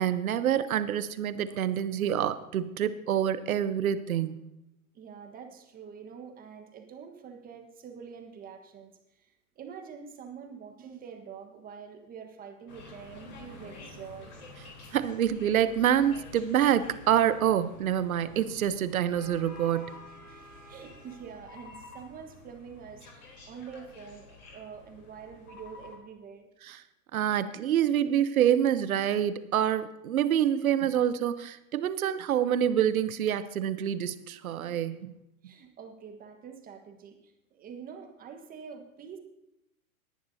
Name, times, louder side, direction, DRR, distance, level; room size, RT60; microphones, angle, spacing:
voice 1, 0.0-4.5 14.9-20.0 26.6-26.8 27.1-35.1, right 10 dB, 75° right, 13 dB, 0.9 m, -27 dB
voice 2, 4.9-8.9 9.2-14.3 20.1-26.5 35.4-39.2, right 6 dB, 20° right, 5 dB, 1.3 m, -46 dB
sound 1, 12.7-26.0, left 3 dB, 85° left, 3.7 m, -49 dB
19.0 x 10.5 x 2.8 m, 0.86 s
hypercardioid pair, 125°, 43 cm